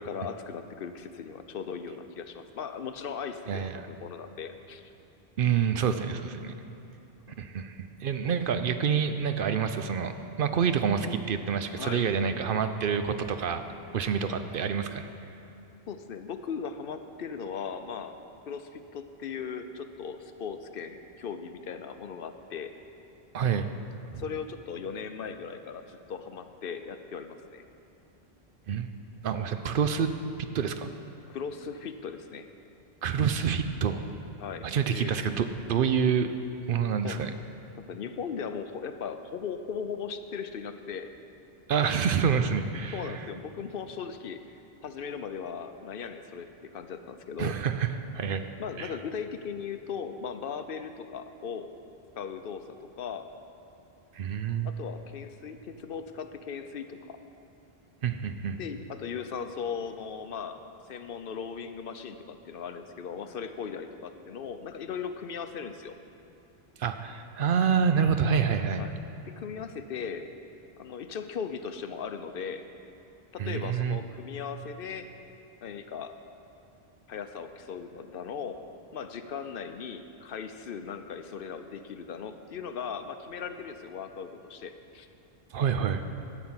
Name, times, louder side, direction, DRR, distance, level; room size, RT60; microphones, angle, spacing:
voice 1, 0.0-4.9 8.2-8.4 11.8-12.1 15.9-18.2 18.5-22.7 24.2-27.6 31.3-32.5 34.4-35.2 37.0-37.2 37.8-41.1 42.9-44.4 44.8-47.6 48.6-51.7 52.2-53.3 54.6-57.2 58.6-60.6 60.9-65.9 68.8-68.9 69.3-70.3 70.8-72.7 73.3-75.1 75.6-76.2 77.1-78.6 78.9-85.1, left 6 dB, 65° left, 9 dB, 0.8 m, -38 dB
voice 2, 3.5-4.0 5.4-6.6 7.4-13.6 13.9-15.1 23.3-23.7 24.1-24.2 28.7-28.9 29.2-30.1 30.4-30.9 33.0-34.0 34.6-36.3 36.7-37.3 41.7-43.2 47.4-47.9 48.1-48.4 48.8-48.9 54.1-54.7 58.0-58.6 66.8-68.8 73.4-74.0 85.5-86.0, right 7 dB, 65° right, 9 dB, 0.7 m, -27 dB
11.5 x 5.9 x 8.7 m, 2.7 s
omnidirectional pair, 1.1 m